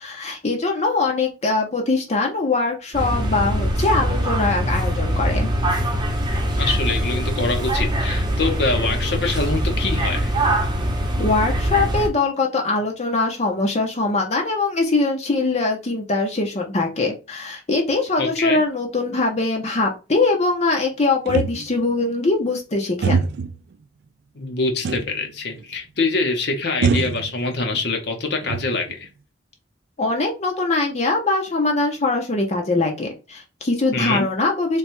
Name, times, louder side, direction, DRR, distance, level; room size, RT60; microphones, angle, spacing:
voice 1, 0.0-5.5 11.2-23.2 30.0-34.8, left 3 dB, 40° left, 1 dB, 0.8 m, -22 dB
sound 1, 2.9-12.1, equal, 25° right, 0.9 m, -22 dB
voice 2, 6.6-10.3 18.2-18.6 24.3-29.1 33.9-34.3, left 3 dB, 65° left, 3 dB, 1.0 m, -24 dB
sound 2, 21.3-21.9 23.0-23.6 24.8-25.3 25.6-25.7 26.8-27.8 28.2-29.0, right 5 dB, 65° right, 0.3 m, -24 dB
3.3 x 2.4 x 4.3 m, 0.30 s
head